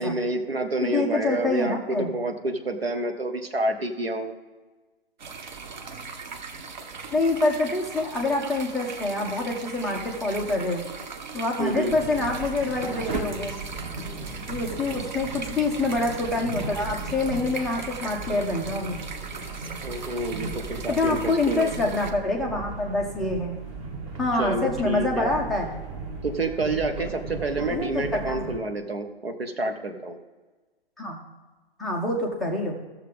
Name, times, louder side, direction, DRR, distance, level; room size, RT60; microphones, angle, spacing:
voice 1, 0.0-4.3 11.6-11.9 19.8-21.7 24.4-25.3 26.2-30.2, right 2 dB, 75° right, 6 dB, 1.2 m, -28 dB
voice 2, 0.9-2.1 7.1-10.8 11.3-13.6 14.5-19.0 20.9-23.6 24.2-25.7 27.7-28.5 31.0-31.2 31.8-32.8, left 2 dB, ahead, -3 dB, 0.4 m, -26 dB
sound 1, 5.2-22.1, right 4 dB, 50° right, 1.0 m, -39 dB
sound 2, 11.9-28.6, right 3 dB, 25° right, 1.3 m, -36 dB
15.0 x 6.6 x 3.6 m, 1.3 s
figure-of-eight pair, 120°, 30 cm